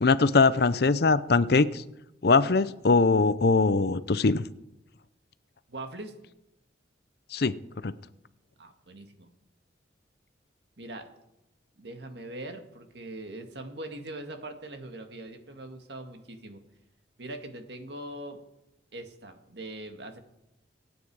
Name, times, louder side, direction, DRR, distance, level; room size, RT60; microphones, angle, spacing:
voice 1, 0.0-1.8 2.2-4.4 7.3-7.5 7.8-7.9, left 4 dB, 55° left, 15 dB, 0.6 m, -22 dB
voice 2, 5.7-6.1 8.6-9.3 10.8-11.1 11.8-16.6 17.2-18.4 18.9-20.2, right 1 dB, 65° right, 5 dB, 1.9 m, -41 dB
24.0 x 9.3 x 4.8 m, 0.89 s
head